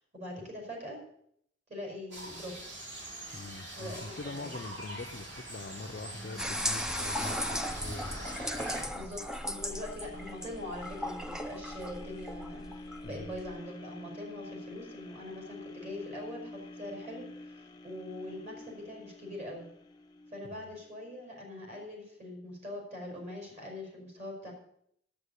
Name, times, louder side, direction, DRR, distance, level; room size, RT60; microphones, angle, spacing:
voice 1, 0.1-1.0 1.7-2.8 3.7-4.5 8.9-12.7 13.0-19.7 20.3-24.5, left 1 dB, 40° right, 0 dB, 5.1 m, -43 dB
sound 1, 2.1-8.8, right 1 dB, 75° right, 3.7 m, -43 dB
voice 2, 3.3-8.1 13.0-13.3 20.5-20.7, left 3 dB, 50° left, 8 dB, 0.6 m, -43 dB
sound 2, 6.4-13.6, equal, 5° right, 0.5 m, -37 dB
sound 3, 9.1-21.2 21.7-21.8, left 2 dB, 25° left, 0.9 m, -48 dB
9.9 x 8.7 x 8.2 m, 0.70 s
head